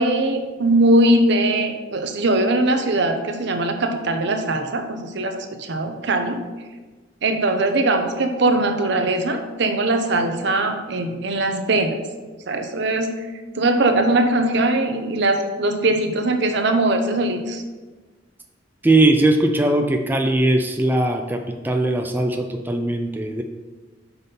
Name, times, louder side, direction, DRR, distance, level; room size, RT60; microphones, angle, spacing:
voice 1, 0.0-6.4 7.2-12.0 12.5-13.1 13.5-17.6, right 2 dB, 65° right, 6 dB, 0.7 m, -20 dB
voice 2, 18.8-23.4, right 2 dB, 10° right, 3 dB, 0.4 m, -19 dB
5.7 x 4.0 x 5.3 m, 1.3 s
head